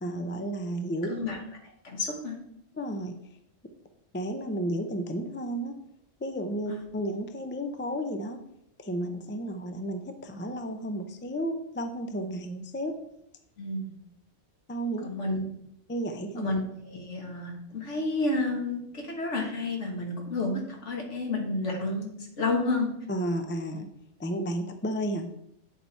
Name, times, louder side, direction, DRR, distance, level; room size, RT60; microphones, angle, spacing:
voice 1, 0.0-1.1 2.8-3.1 4.1-5.7 6.2-8.4 8.8-12.9 14.7-15.1 15.9-16.5 23.1-23.9 24.2-25.3, right 1 dB, 20° left, 6 dB, 0.3 m, -32 dB
voice 2, 1.0-1.4 1.8-2.4 6.7-6.8 13.6-13.9 15.0-15.4 16.4-22.1 22.4-22.9, left 2 dB, 70° left, 1 dB, 1.8 m, -30 dB
8.3 x 4.1 x 4.5 m, 0.75 s
omnidirectional pair, 1.3 m